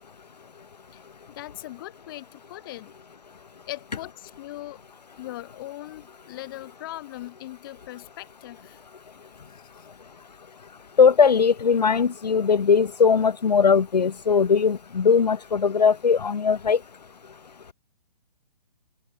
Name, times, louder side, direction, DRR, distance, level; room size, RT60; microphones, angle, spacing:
voice 1, 0.9-2.9 3.7-4.8 5.2-8.8 9.5-9.9, left 16 dB, 30° left, 4.6 m, -40 dB
voice 2, 11.0-16.8, left 6 dB, 80° left, 0.5 m, -19 dB
figure-of-eight pair, 135°, 21 cm